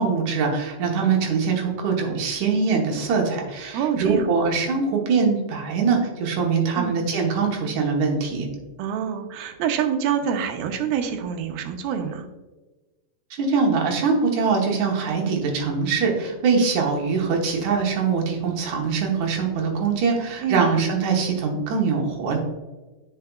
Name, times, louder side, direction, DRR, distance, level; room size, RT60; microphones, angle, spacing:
voice 1, 0.0-8.5 13.3-22.4, right 5 dB, 65° right, 0 dB, 2.2 m, -23 dB
voice 2, 3.7-4.3 6.7-7.0 8.8-12.3 20.4-20.7, right 8 dB, 85° right, 6 dB, 2.5 m, -26 dB
9.2 x 5.7 x 2.3 m, 1.2 s
omnidirectional pair, 4.3 m